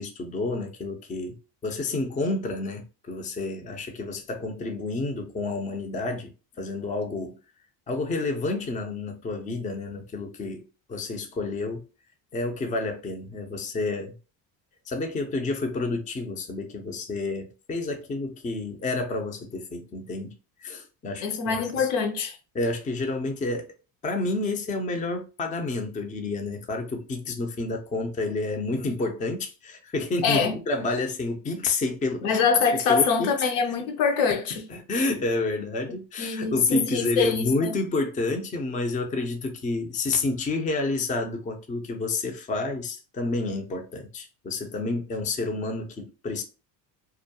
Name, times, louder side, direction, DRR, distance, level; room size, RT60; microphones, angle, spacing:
voice 1, 0.0-1.3 1.6-6.3 6.6-7.4 7.9-10.6 10.9-11.8 12.3-14.1 14.9-20.3 20.6-21.9 22.5-23.7 24.0-32.4 32.9-33.3 34.7-46.4, left 2 dB, 15° left, 0.4 m, -29 dB
voice 2, 21.2-22.4 30.2-30.6 32.2-34.7 36.2-37.7, left 5 dB, 70° left, 0.7 m, -24 dB
2.3 x 2.1 x 2.7 m
hypercardioid pair, 75°, 50 cm